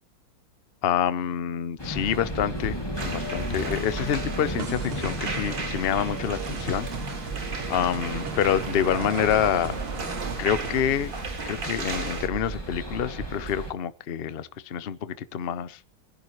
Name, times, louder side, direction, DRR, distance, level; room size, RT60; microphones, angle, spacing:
voice 1, 0.8-2.8 3.0-6.9 7.7-9.8 10.4-11.1 11.4-15.8, left 9 dB, 70° left, 14 dB, 0.5 m, -27 dB
sound 1, 1.8-13.7, right 1 dB, 10° left, 2.3 m, -34 dB
sound 2, 2.9-12.3, right 3 dB, 40° right, 2.2 m, -37 dB
sound 3, 4.4-10.8, right 7 dB, 65° right, 0.6 m, -38 dB
25.0 x 11.0 x 3.1 m, 0.32 s
omnidirectional pair, 2.2 m